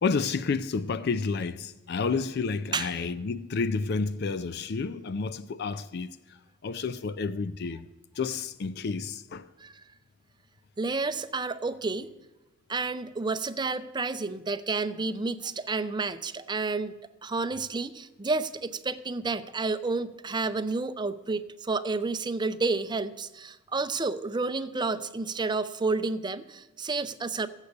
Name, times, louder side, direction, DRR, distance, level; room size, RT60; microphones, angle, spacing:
voice 1, 0.0-6.1 6.6-7.8 8.2-9.5, left 4 dB, 55° left, 0.4 m, -30 dB
voice 2, 10.8-12.1 12.7-16.9 17.2-27.5, right 3 dB, 25° right, 0.5 m, -30 dB
14.5 x 8.2 x 6.6 m
head